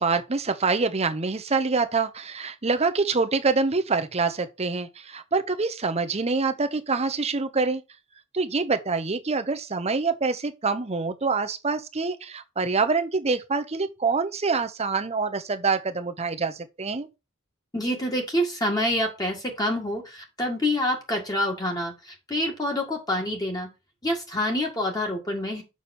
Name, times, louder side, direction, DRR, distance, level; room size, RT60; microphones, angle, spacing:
voice 1, 0.0-7.8 8.3-17.1, right 4 dB, 30° right, 0.8 m, -26 dB
voice 2, 17.7-23.7 24.0-25.6, left 1 dB, 20° left, 1.8 m, -27 dB
7.0 x 6.1 x 4.3 m
head